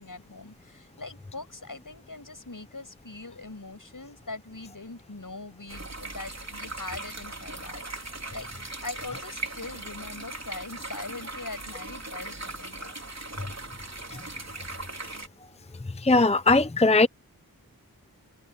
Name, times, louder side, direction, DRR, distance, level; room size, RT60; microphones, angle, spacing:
voice 1, 0.0-8.5 8.8-12.9, left 3 dB, 65° left, 6.9 m, -41 dB
sound 1, 5.7-15.3, right 2 dB, 50° right, 3.7 m, -39 dB
voice 2, 16.0-17.1, left 3 dB, 20° left, 0.6 m, -20 dB
wide cardioid pair, 40°, 35 cm